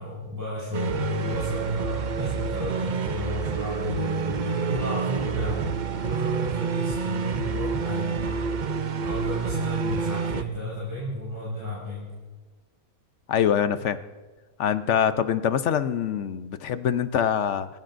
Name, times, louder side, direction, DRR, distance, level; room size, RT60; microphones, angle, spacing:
voice 1, 0.0-5.6 6.0-8.5 9.0-12.1, left 1 dB, 10° right, -9 dB, 5.8 m, -32 dB
sound 1, 0.7-10.4, right 5 dB, 60° right, 0.4 m, -28 dB
voice 2, 13.3-14.0 14.6-17.7, left 8 dB, 60° left, 11 dB, 0.9 m, -24 dB
26.5 x 16.0 x 2.6 m, 1.3 s
omnidirectional pair, 1.6 m